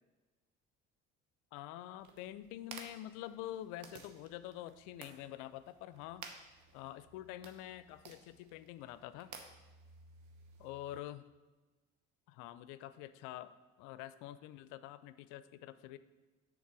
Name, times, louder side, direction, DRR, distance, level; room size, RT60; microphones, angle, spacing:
voice 1, 1.5-6.3 6.7-9.3 10.6-11.3 12.3-16.0, left 13 dB, 80° left, 14 dB, 0.5 m, -47 dB
sound 1, 2.0-11.0, right 5 dB, 65° right, 1.0 m, -55 dB
7.2 x 3.9 x 6.0 m, 1.2 s
supercardioid pair, 80°, 30 cm